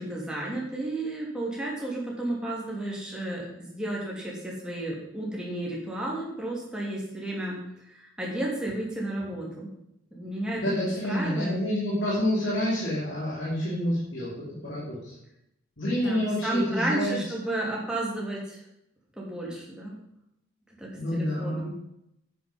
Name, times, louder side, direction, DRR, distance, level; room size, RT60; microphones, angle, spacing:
voice 1, 0.0-9.7 10.1-11.5 15.9-18.6 19.2-19.9 20.8-21.7, right 1 dB, 5° right, -4 dB, 3.1 m, -32 dB
voice 2, 10.6-15.1 15.8-17.2 21.0-21.7, left 1 dB, 65° left, -7 dB, 3.2 m, -28 dB
9.6 x 9.3 x 5.4 m, 0.81 s
head